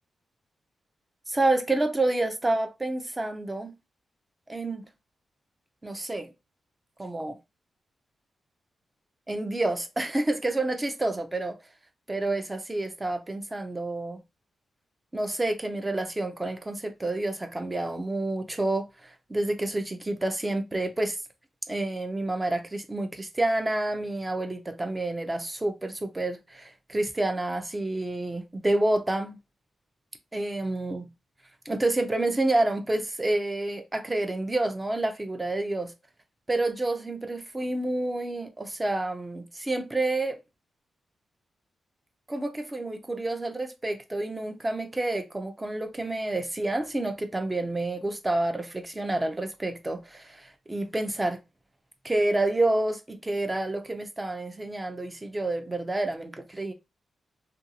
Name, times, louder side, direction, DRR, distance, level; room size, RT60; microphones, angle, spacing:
voice 1, 1.3-3.7 4.5-4.8 5.8-6.3 7.0-7.4 9.3-11.6 12.1-14.2 15.1-21.2 21.7-29.4 30.3-31.1 31.7-35.9 36.5-40.4 42.3-51.4 52.0-56.7, right 2 dB, 20° right, 0.5 m, -29 dB
2.6 x 2.3 x 2.8 m
cardioid pair, 95°, 0 cm